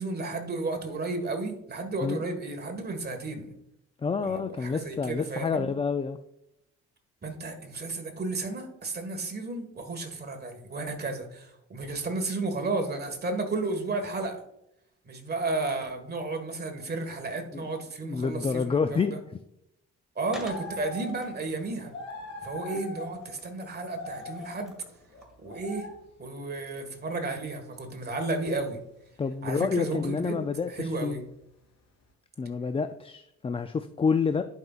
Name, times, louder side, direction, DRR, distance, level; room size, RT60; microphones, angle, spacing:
voice 1, 0.0-3.5 4.2-5.7 7.2-14.4 15.0-19.2 20.1-21.9 22.4-24.7 25.4-25.9 26.2-28.8 29.4-31.2, right 3 dB, 35° right, 4 dB, 1.7 m, -33 dB
voice 2, 4.0-6.2 17.5-17.6 18.0-19.4 29.2-31.2 32.4-34.4, left 5 dB, 20° left, 9 dB, 0.3 m, -28 dB
Skateboard, 20.3-25.8, equal, ahead, 2.1 m, -49 dB
sound 1, 20.5-21.2 21.5-21.7 21.9-23.3 23.8-24.6 25.1-26.0 27.3-27.4 28.0-28.1 28.6-28.7, left 2 dB, 65° left, 2.8 m, -40 dB
11.0 x 5.3 x 2.4 m, 0.80 s
cardioid pair, 90°, 30 cm